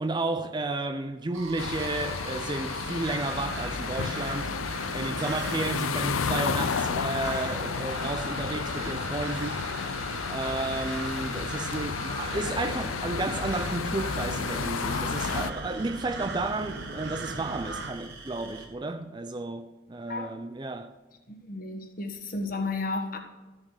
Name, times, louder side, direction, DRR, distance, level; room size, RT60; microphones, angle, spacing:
voice 1, 0.0-4.5 4.9-9.7 10.3-20.9, right 2 dB, 20° right, 0.4 m, -32 dB
sound 1, 1.3-4.8 5.9-13.3 15.2-18.7, right 2 dB, 85° right, 2.6 m, -43 dB
sound 2, 1.6-15.5, left 6 dB, 90° left, 0.5 m, -32 dB
sound 3, 3.0-17.9, right 3 dB, 55° right, 0.9 m, -39 dB
voice 2, 21.3-23.2, left 3 dB, 45° left, 1.4 m, -33 dB
14.0 x 6.9 x 4.9 m
head